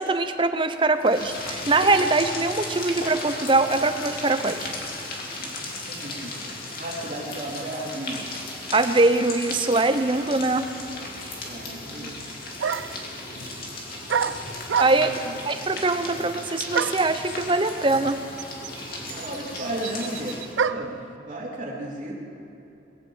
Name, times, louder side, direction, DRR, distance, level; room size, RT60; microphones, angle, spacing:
voice 1, 0.0-4.7 8.7-10.7 14.8-15.1 15.5-18.2, right 2 dB, 25° right, 9 dB, 0.7 m, -22 dB
sound 1, 1.0-20.6, left 2 dB, 50° left, 2.4 m, -36 dB
voice 2, 5.9-8.3 11.4-12.2 14.2-14.5 14.9-15.4 16.1-16.3 19.1-22.2, right 1 dB, 45° right, -4 dB, 3.4 m, -35 dB
sound 2, 12.1-12.2 12.6-13.1 14.1-15.2 16.7-17.1 18.1-18.2 18.4-21.0, right 6 dB, 90° right, 0.5 m, -27 dB
21.0 x 8.0 x 8.0 m, 2.8 s
head